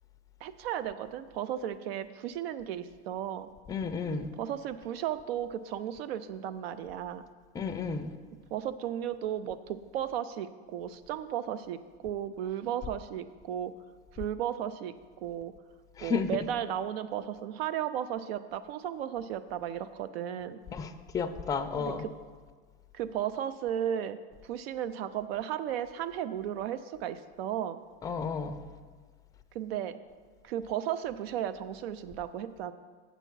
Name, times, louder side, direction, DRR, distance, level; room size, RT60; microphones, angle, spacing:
voice 1, 0.4-3.5 4.4-7.2 8.5-13.7 14.1-15.5 16.0-20.6 21.8-21.9 22.9-24.2 24.4-27.8 29.5-30.0 30.4-32.7, right 10 dB, 90° right, 13 dB, 0.5 m, -35 dB
voice 2, 3.7-4.3 7.5-8.1 16.0-16.3 20.7-22.0 28.0-28.6, left 5 dB, 10° left, 8 dB, 0.3 m, -32 dB
8.1 x 6.8 x 4.6 m, 1.5 s
supercardioid pair, 125°, 29 cm